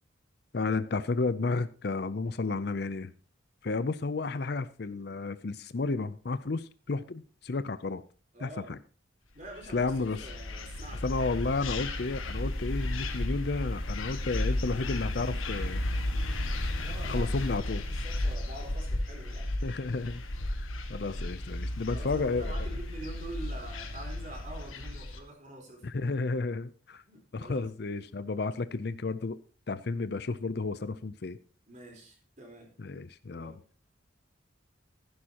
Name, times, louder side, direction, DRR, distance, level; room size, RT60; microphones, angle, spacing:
voice 1, 0.5-3.1 3.6-8.0 8.4-8.8 9.7-10.2 11.0-15.8 17.0-17.8 19.6-20.2 20.6-22.7 25.8-27.0 27.3-29.4 29.7-31.4 32.8-33.5, left 3 dB, 55° left, 14 dB, 0.5 m, -32 dB
voice 2, 8.3-8.8 9.3-11.1 16.8-19.5 21.9-25.8 27.1-28.0 31.7-32.8 33.3-33.6, right 1 dB, 40° right, 2 dB, 4.1 m, -46 dB
sound 1, 9.5-25.2, left 1 dB, 90° left, 1.8 m, -34 dB
14.5 x 11.0 x 2.9 m, 0.37 s
head